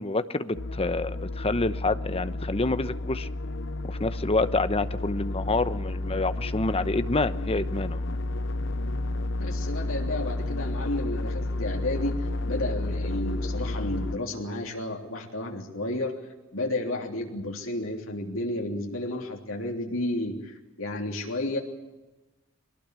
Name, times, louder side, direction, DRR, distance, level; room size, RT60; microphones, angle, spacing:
voice 1, 0.0-3.3 3.8-8.2, left 2 dB, 30° left, 12 dB, 0.9 m, -28 dB
sound 1, 0.5-14.2, left 2 dB, 65° left, 0.8 m, -31 dB
voice 2, 9.3-12.1 12.4-16.1 16.5-21.6, left 1 dB, 85° left, 1 dB, 3.4 m, -32 dB
23.5 x 18.5 x 8.3 m, 1.1 s
head